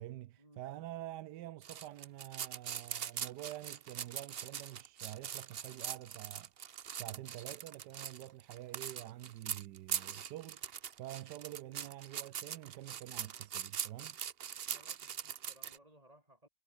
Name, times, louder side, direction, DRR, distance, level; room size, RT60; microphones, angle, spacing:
voice 1, 0.0-14.2, right 14 dB, 75° right, 1.2 m, -47 dB
sound 1, 1.6-15.8, right 8 dB, 50° right, 0.7 m, -42 dB
voice 2, 14.7-16.5, right 1 dB, 20° right, 5.3 m, -63 dB
omnidirectional pair, 1.9 m